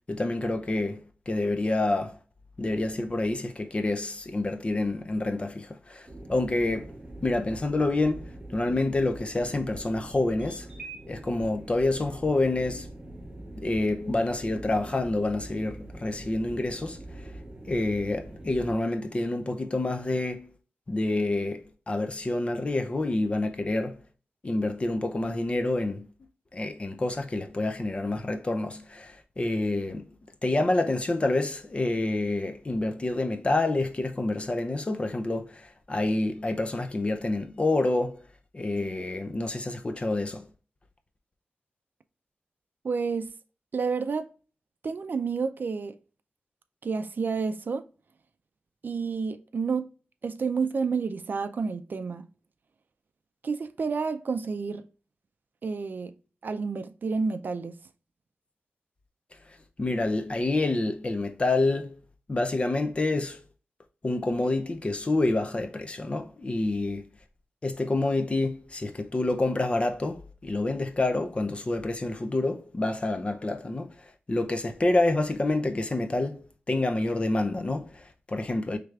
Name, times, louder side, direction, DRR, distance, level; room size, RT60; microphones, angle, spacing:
voice 1, 0.1-2.1 2.6-6.9 7.2-8.2 8.5-10.7 11.1-12.9 13.6-17.3 17.7-20.5 20.9-24.0 24.4-26.1 26.5-30.1 30.4-38.2 38.5-40.5 59.8-62.0 62.3-63.4 64.0-67.0 67.6-74.0 74.3-78.8, left 2 dB, 30° left, 0.5 m, -28 dB
sound 1, 6.1-18.8, right 1 dB, 20° right, 0.9 m, -43 dB
voice 2, 42.8-43.3 43.7-44.3 44.8-46.0 46.8-47.9 48.8-49.9 50.2-52.3 53.4-54.8 55.6-56.1 56.4-57.8, right 5 dB, 55° right, 0.4 m, -30 dB
4.7 x 3.3 x 2.4 m
wide cardioid pair, 130°, 4 cm